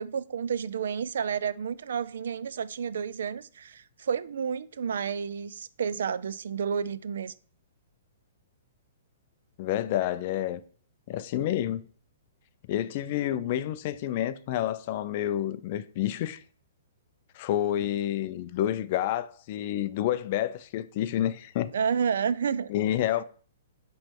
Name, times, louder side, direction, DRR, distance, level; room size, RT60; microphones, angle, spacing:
voice 1, 0.0-7.3 21.7-22.7, right 7 dB, 70° right, 0.4 m, -30 dB
voice 2, 9.6-10.6 11.1-11.8 12.7-16.4 17.3-21.7 22.7-23.2, left 12 dB, 35° left, 0.3 m, -29 dB
7.4 x 3.1 x 4.6 m
hypercardioid pair, 165°, 0 cm